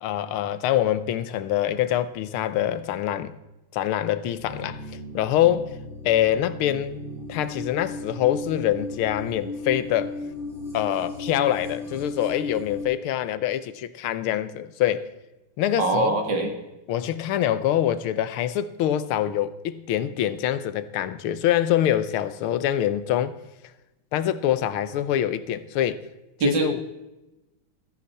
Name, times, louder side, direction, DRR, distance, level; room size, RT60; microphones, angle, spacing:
voice 1, 0.0-3.3 3.7-4.8 5.1-5.7 6.0-7.0 7.3-10.1 10.7-15.1 15.6-16.2 16.9-23.4 24.1-26.0 26.4-26.8, left 11 dB, 85° left, 1.7 m, -25 dB
sound 1, 4.4-12.8, left 2 dB, ahead, 5.7 m, -36 dB
voice 2, 15.8-16.5 26.4-26.7, right 3 dB, 60° right, 2.6 m, -22 dB
16.0 x 14.0 x 4.2 m
omnidirectional pair, 2.3 m